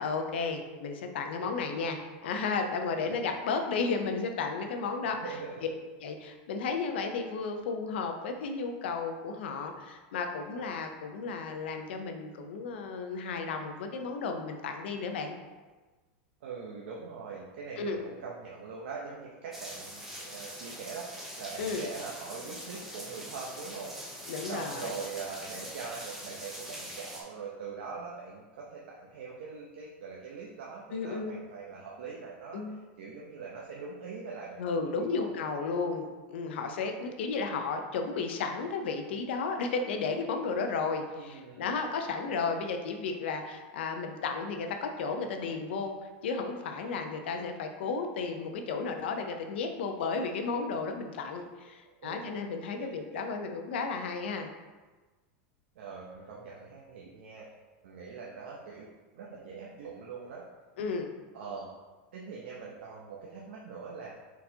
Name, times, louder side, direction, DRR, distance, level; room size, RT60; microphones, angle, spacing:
voice 1, 0.0-5.3 6.0-15.4 17.8-18.0 21.6-21.9 24.3-24.9 30.9-31.3 32.5-32.8 34.6-54.5 60.8-61.1, left 4 dB, 85° left, 5 dB, 0.5 m, -33 dB
voice 2, 3.0-3.4 3.7-3.8 5.0-5.8 16.4-23.9 24.5-34.7 35.0-35.3 41.1-41.7 52.0-52.3 52.8-53.4 55.7-57.4 57.8-58.9 59.1-60.4 61.3-61.7 62.1-64.1, right 5 dB, 85° right, -3 dB, 0.7 m, -42 dB
sound 1, 19.5-27.2, equal, 5° right, 0.6 m, -43 dB
4.3 x 4.0 x 2.7 m, 1.3 s
supercardioid pair, 175°, 6 cm